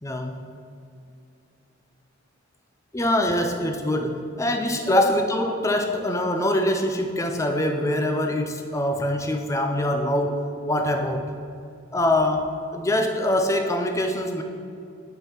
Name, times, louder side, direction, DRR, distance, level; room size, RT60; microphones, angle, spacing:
voice 1, 0.0-0.4 2.9-11.3 11.9-14.4, left 1 dB, 15° left, 5 dB, 0.4 m, -24 dB
6.4 x 4.6 x 5.8 m, 2.5 s
head